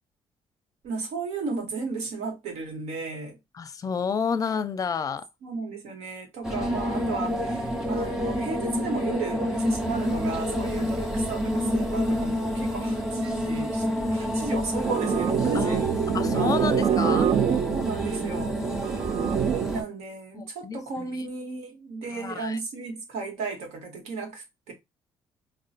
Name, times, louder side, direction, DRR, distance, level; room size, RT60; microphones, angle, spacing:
voice 1, 0.8-3.4 5.4-15.9 16.2-16.5 17.7-18.6 19.7-24.7, right 4 dB, 80° right, 1.2 m, -34 dB
voice 2, 3.5-5.3 15.5-17.3 20.3-21.2 22.1-22.6, left 6 dB, 35° left, 0.5 m, -30 dB
sound 1, 6.4-19.8, equal, 5° right, 1.1 m, -28 dB
sound 2, 14.8-19.8, right 8 dB, 50° right, 0.4 m, -26 dB
3.7 x 2.3 x 2.4 m
cardioid pair, 85°, 11 cm